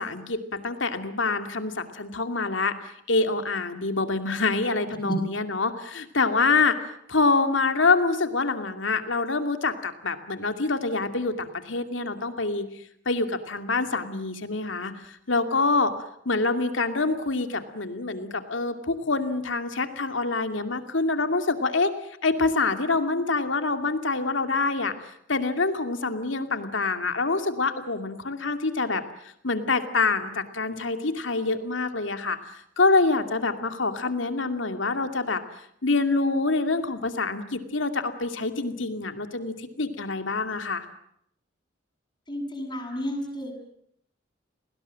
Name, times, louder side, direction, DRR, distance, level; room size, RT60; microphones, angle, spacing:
voice 1, 0.0-2.7 3.1-6.8 7.1-12.6 13.1-15.9 16.2-21.9 22.2-24.9 25.3-29.0 29.4-32.5 32.8-35.4 35.8-40.9, left 3 dB, 80° left, 8 dB, 2.5 m, -26 dB
voice 2, 42.3-43.5, equal, 25° left, 0 dB, 7.8 m, -32 dB
29.5 x 20.0 x 7.5 m, 0.71 s
head